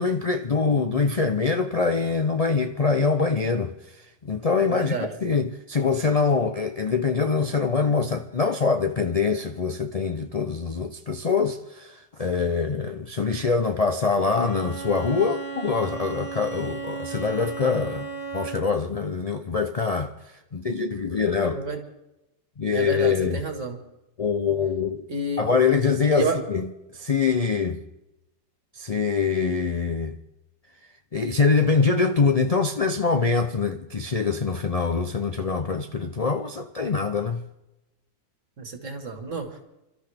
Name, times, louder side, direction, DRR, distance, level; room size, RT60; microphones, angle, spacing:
voice 1, 0.0-3.7 4.2-20.1 20.5-21.6 22.6-23.4 24.2-25.1 25.4-27.8 28.7-30.2 31.1-37.4, left 5 dB, 65° left, 0.3 m, -24 dB
voice 2, 4.6-5.1 21.5-21.8 22.7-23.8 25.1-25.5 26.1-26.4 38.6-39.6, right 3 dB, 50° right, 2.1 m, -29 dB
Bowed string instrument, 14.4-18.8, right 5 dB, 20° left, 1.3 m, -35 dB
28.5 x 13.0 x 3.5 m
omnidirectional pair, 1.7 m